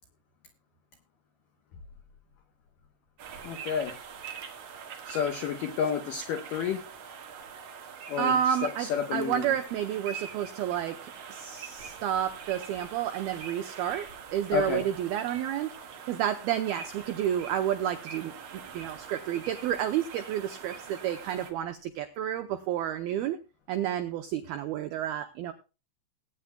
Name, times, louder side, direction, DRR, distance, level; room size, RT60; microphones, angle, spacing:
sound 1, 3.2-21.5, right 6 dB, 60° right, 2.2 m, -44 dB
voice 1, 3.4-3.9 5.1-6.8 8.1-9.5 14.5-14.9, left 7 dB, 85° left, 6 dB, 1.9 m, -30 dB
voice 2, 8.2-15.7 16.1-18.3 18.7-23.4 23.7-25.5, right 10 dB, 90° right, 7 dB, 2.1 m, -30 dB
20.0 x 9.6 x 2.2 m, 0.30 s
omnidirectional pair, 5.4 m